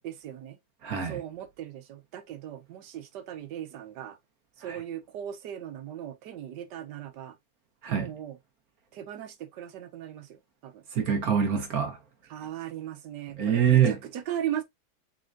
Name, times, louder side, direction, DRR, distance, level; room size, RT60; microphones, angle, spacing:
voice 1, 0.0-0.6 1.0-4.2 4.6-7.4 7.9-8.4 8.9-10.8 12.3-14.6, right 10 dB, 90° right, 1.4 m, -38 dB
voice 2, 0.8-1.2 4.6-4.8 7.8-8.1 10.9-12.0 13.4-14.0, right 8 dB, 65° right, 1.3 m, -24 dB
4.2 x 3.8 x 2.4 m
omnidirectional pair, 1.8 m